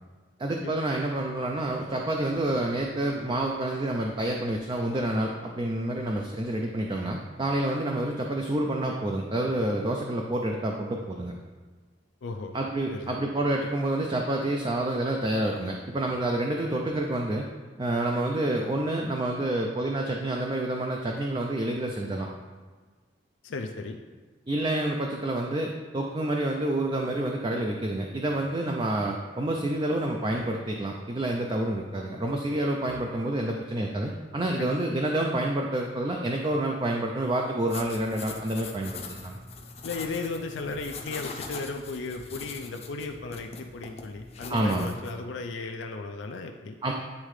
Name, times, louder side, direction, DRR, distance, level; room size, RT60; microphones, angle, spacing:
voice 1, 0.4-11.3 12.5-17.5 17.8-22.3 24.5-39.4 44.5-44.9 46.8-46.9, right 1 dB, 25° right, 1 dB, 0.4 m, -28 dB
voice 2, 12.2-12.6 12.9-13.2 23.4-24.0 34.6-34.8 39.8-46.8, left 3 dB, 90° left, 3 dB, 0.4 m, -35 dB
sound 1, 37.6-45.2, left 4 dB, 35° left, 0.6 m, -42 dB
9.6 x 3.6 x 3.2 m, 1.4 s
head